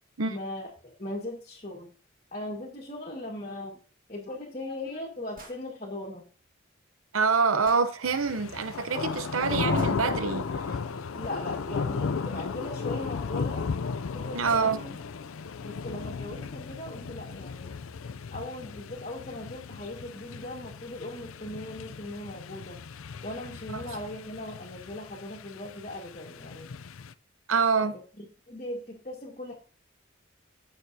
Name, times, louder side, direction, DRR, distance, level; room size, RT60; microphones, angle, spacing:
voice 1, 0.3-1.9 2.3-3.8 4.1-6.3 11.1-13.7 14.1-14.9 15.6-17.7 18.3-22.8 23.2-26.7 27.8-27.9 28.2-29.5, left 1 dB, 35° left, 1.8 m, -39 dB
sound 1, 5.3-5.6 7.6-7.9 9.7-10.0 12.3-12.4 13.7-13.8 14.1-14.2 14.4-14.7, right 3 dB, 40° right, 1.8 m, -48 dB
voice 2, 7.1-10.5 14.3-14.8 23.7-23.8 27.5-28.0, right 5 dB, 85° right, 0.8 m, -26 dB
sound 2, 8.0-27.1, left 5 dB, 85° left, 0.5 m, -35 dB
15.5 x 6.4 x 2.8 m
head